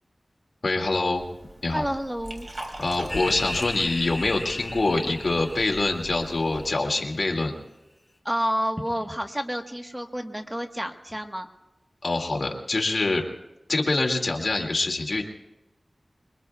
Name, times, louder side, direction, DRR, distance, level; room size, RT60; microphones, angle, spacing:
voice 1, 0.6-1.2 1.6-1.8 2.8-7.5 12.0-13.2 13.7-15.2, left 2 dB, 75° left, 2 dB, 2.2 m, -25 dB
Liquid, 1.1-6.7, right 1 dB, 50° right, 2.9 m, -43 dB
voice 2, 1.7-2.5 8.2-11.5, equal, 10° right, 4 dB, 1.3 m, -29 dB
sound 1, 3.1-7.0, left 1 dB, 35° left, 1.7 m, -36 dB
26.5 x 22.5 x 2.3 m, 0.96 s
wide cardioid pair, 50°, 0 cm